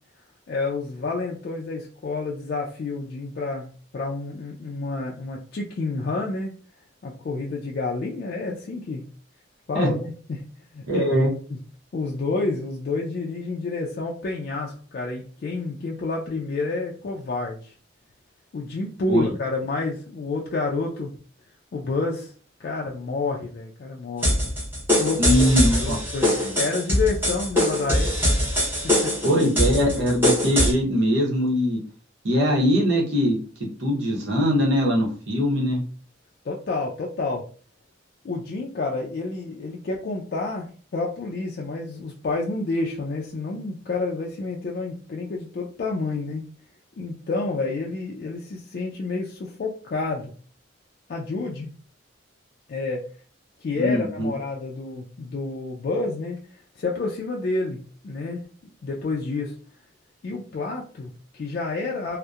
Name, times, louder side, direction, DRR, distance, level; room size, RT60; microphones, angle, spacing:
voice 1, 0.5-6.5 7.0-9.0 9.7-10.4 10.7-11.1 11.5-11.6 11.9-17.7 18.5-21.1 21.7-22.3 22.6-24.5 25.0-28.4 28.8-29.1 36.4-37.4 38.2-46.4 47.0-50.3 51.1-51.7 52.7-53.0 53.6-58.4 58.8-59.5 60.2-62.2, left 3 dB, 50° left, -1 dB, 0.3 m, -29 dB
voice 2, 10.9-11.3 19.1-19.3 25.2-26.0 29.2-31.8 32.2-33.4 33.8-35.8 53.8-54.3, equal, 80° right, -2 dB, 0.8 m, -21 dB
sound 1, 24.2-30.7, left 1 dB, 10° right, 0.7 m, -22 dB
2.7 x 2.0 x 2.3 m, 0.42 s
head